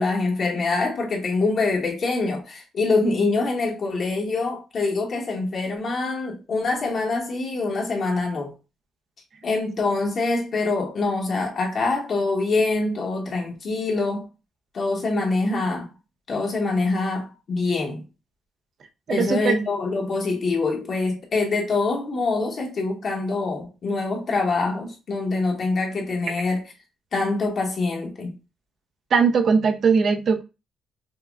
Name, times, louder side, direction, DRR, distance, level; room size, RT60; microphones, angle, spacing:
voice 1, 0.0-8.5 9.4-14.3 14.7-15.9 16.3-18.1 19.1-26.6 27.1-28.3, left 3 dB, 50° left, 1.1 m, -25 dB
voice 2, 19.1-19.6 29.1-30.4, right 5 dB, 55° right, 0.6 m, -20 dB
5.6 x 2.2 x 2.4 m
cardioid pair, 90°, 0 cm